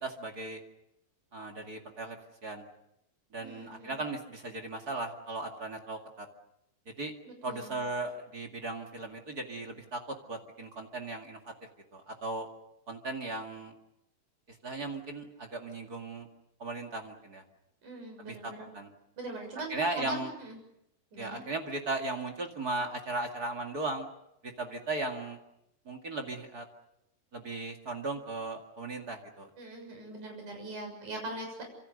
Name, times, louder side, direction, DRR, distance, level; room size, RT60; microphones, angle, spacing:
voice 1, 0.0-0.6 1.3-2.2 2.4-2.7 3.3-6.3 6.9-7.1 7.4-11.4 11.9-12.5 12.9-13.7 14.5-16.3 16.6-17.4 18.2-18.9 19.7-20.3 21.2-24.1 24.4-25.4 25.9-26.7 27.3-29.5, right 2 dB, 30° right, 3 dB, 2.0 m, -37 dB
voice 2, 3.4-4.0 7.2-7.8 17.8-18.7 19.2-20.6 21.1-21.4 29.6-31.6, right 2 dB, 55° right, 3 dB, 8.3 m, -41 dB
26.5 x 26.5 x 6.6 m, 0.81 s
omnidirectional pair, 4.2 m